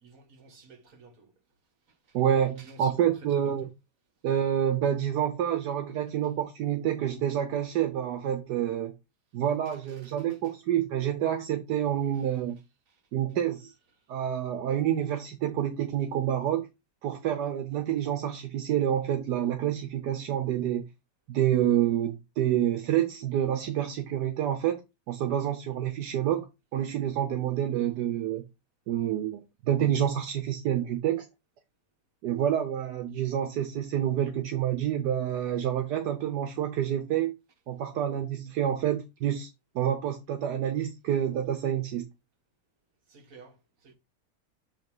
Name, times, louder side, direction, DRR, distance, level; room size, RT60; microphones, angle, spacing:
voice 1, 0.0-1.3 2.1-2.2 2.6-3.1 3.4-3.5 43.1-43.6 43.8-43.9, right 3 dB, 50° right, 1.9 m, -52 dB
voice 2, 2.1-3.7 4.2-8.9 9.3-12.6 13.1-13.7 14.1-16.7 17.0-20.8 21.3-24.8 25.1-28.4 28.9-31.2 32.2-37.3 37.7-39.5 39.7-42.0, right 10 dB, 75° right, 1.4 m, -28 dB
7.8 x 3.0 x 5.4 m
omnidirectional pair, 1.8 m